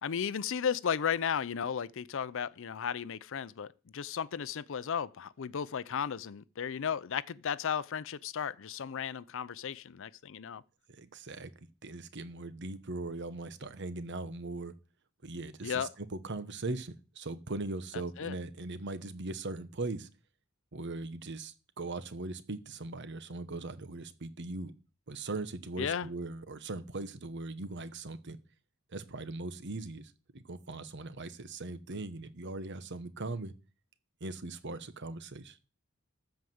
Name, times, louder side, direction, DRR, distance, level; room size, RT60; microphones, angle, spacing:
voice 1, 0.0-10.6 15.6-15.9 18.2-18.3 25.8-26.1, left 7 dB, 65° left, 0.5 m, -34 dB
voice 2, 10.9-11.5 11.8-14.7 15.2-20.1 20.7-24.7 25.1-28.4 28.9-33.5 34.2-35.6, right 2 dB, 60° right, 1.1 m, -40 dB
13.5 x 4.9 x 7.8 m
head